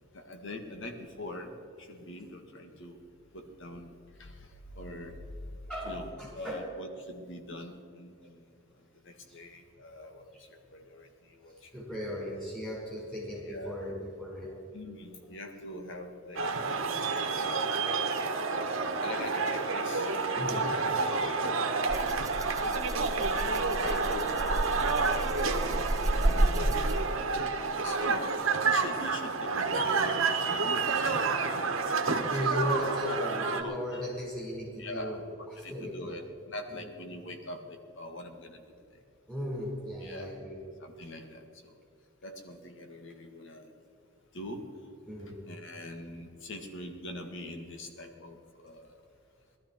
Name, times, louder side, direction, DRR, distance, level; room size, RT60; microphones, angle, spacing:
voice 1, 0.1-3.1 3.3-3.9 4.2-5.2 5.8-8.4 9.0-11.7 13.5-13.9 14.7-16.9 17.3-17.7 19.0-20.1 21.0-21.7 22.1-23.0 23.7-28.3 28.6-31.7 32.2-32.8 33.2-33.3 33.6-34.0 34.8-35.2 35.6-36.2 36.5-38.6 40.0-40.3 40.8-41.4 42.2-43.7 44.3-44.6 45.4-48.4 48.6-48.9, left 1 dB, 65° left, 5 dB, 1.7 m, -43 dB
voice 2, 5.7-6.6 9.3-9.4 11.7-14.5 15.1-15.3 17.1-17.2 20.3-20.7 21.0-21.2 32.3-36.2 36.7-36.9 39.3-40.6 45.0-45.4, left 1 dB, 5° left, -4 dB, 4.6 m, -37 dB
sound 1, 16.4-33.6, right 4 dB, 80° right, 1.3 m, -29 dB
Rattle (instrument), 21.9-27.2, right 1 dB, 15° right, 0.6 m, -31 dB
18.5 x 12.5 x 4.5 m, 2.5 s
head